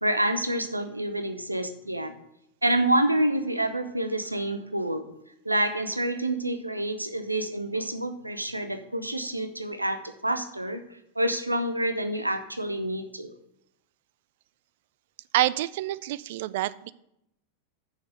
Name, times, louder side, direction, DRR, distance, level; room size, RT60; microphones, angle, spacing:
voice 1, 0.0-2.1 2.6-5.1 5.4-10.8 11.2-13.3, right 1 dB, 85° right, 8 dB, 0.7 m, -28 dB
voice 2, 15.3-16.9, right 16 dB, 50° right, 18 dB, 0.3 m, -27 dB
6.7 x 6.5 x 6.5 m, 0.80 s
figure-of-eight pair, 90°, 0 cm